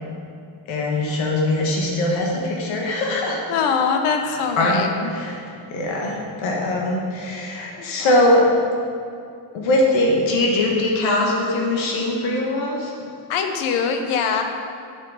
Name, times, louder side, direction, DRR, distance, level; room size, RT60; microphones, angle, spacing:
voice 1, 0.7-3.4 4.2-5.4 5.7-8.5 9.5-12.9, left 1 dB, 70° left, -2 dB, 1.6 m, -21 dB
voice 2, 3.5-5.1 7.8-7.9 13.3-14.4, left 6 dB, 85° left, 5 dB, 1.1 m, -22 dB
9.3 x 6.4 x 4.9 m, 2.4 s
cardioid pair, 175°, 49 cm